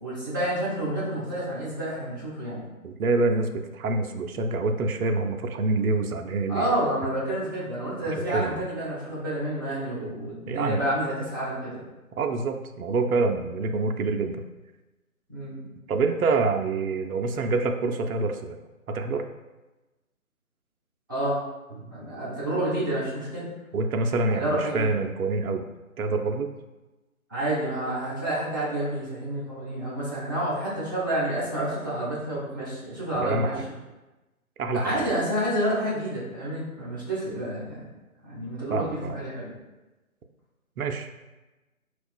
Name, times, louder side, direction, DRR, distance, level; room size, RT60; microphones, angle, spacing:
voice 1, 0.0-2.6 6.5-11.8 15.3-15.6 21.1-21.4 21.7-23.5 24.3-24.9 27.3-33.6 34.7-37.8 38.2-39.5, right 1 dB, 15° right, -12 dB, 0.6 m, -29 dB
voice 2, 2.8-6.7 8.3-8.6 10.5-10.8 12.2-14.4 15.9-18.6 18.9-19.3 23.7-25.6 26.0-26.5 33.1-33.6 34.6-35.1 38.7-39.2 40.8-41.1, right 3 dB, 80° right, 5 dB, 0.5 m, -26 dB
4.6 x 2.3 x 2.3 m, 1.1 s
figure-of-eight pair, 150°, 43 cm